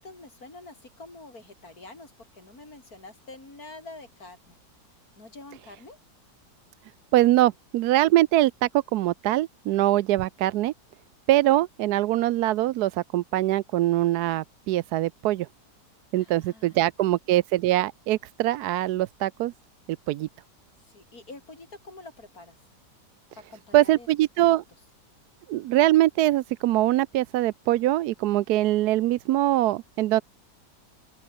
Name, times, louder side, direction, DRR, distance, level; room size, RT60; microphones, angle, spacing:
voice 1, 0.0-4.6 5.2-6.0 16.2-16.8 20.8-22.6 23.3-24.1, left 2 dB, 55° left, 6.5 m, -46 dB
voice 2, 7.1-10.7 11.3-15.5 16.1-19.5 20.1-20.3 23.7-24.6 25.5-30.2, right 15 dB, 75° right, 1.0 m, -23 dB
open air
omnidirectional pair, 1.8 m